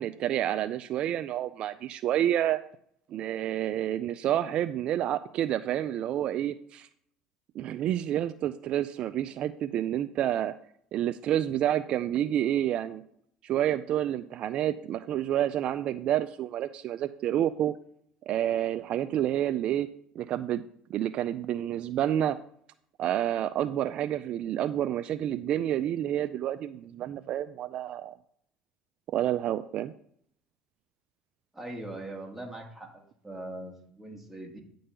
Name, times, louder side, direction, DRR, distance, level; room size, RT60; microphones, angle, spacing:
voice 1, 0.0-2.6 3.1-6.9 7.6-10.5 10.9-13.0 13.4-17.7 18.3-19.9 20.2-20.6 20.9-22.4 23.0-28.2 29.1-29.9, right 11 dB, 55° right, 12 dB, 0.4 m, -29 dB
voice 2, 31.5-34.6, right 1 dB, 5° right, 0 dB, 2.1 m, -41 dB
9.7 x 3.9 x 6.8 m, 0.66 s
supercardioid pair, 100°, 2 cm